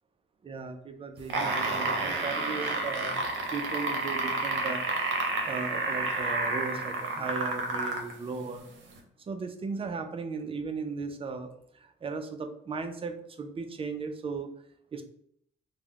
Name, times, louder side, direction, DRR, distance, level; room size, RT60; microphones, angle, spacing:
voice 1, 0.4-8.7 9.3-14.5 14.9-15.0, right 4 dB, 30° right, 7 dB, 0.4 m, -37 dB
sound 1, 1.2-8.1 9.0-9.1, right 3 dB, 70° right, 0.7 m, -30 dB
2.3 x 2.1 x 3.5 m, 0.68 s
cardioid pair, 90°, 20 cm